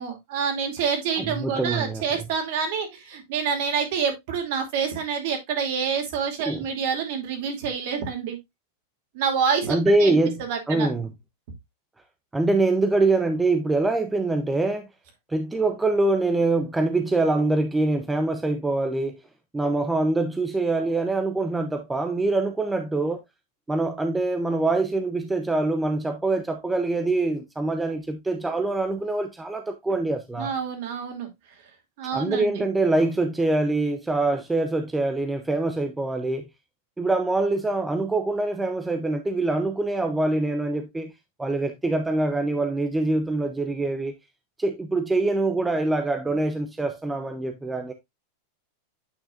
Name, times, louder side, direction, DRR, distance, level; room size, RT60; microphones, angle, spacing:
voice 1, 0.0-8.4 9.1-10.2 10.5-10.9 30.4-31.3 32.0-32.6, right 6 dB, 50° right, 2.6 m, -27 dB
voice 2, 1.2-2.2 6.5-6.6 9.7-10.4 10.7-11.1 12.3-14.9 15.3-19.2 19.5-23.2 23.7-30.5 32.1-36.5 37.0-41.1 41.4-44.1 44.6-47.9, right 2 dB, 5° right, 0.6 m, -24 dB
8.9 x 6.1 x 2.5 m
supercardioid pair, 170°, 0 cm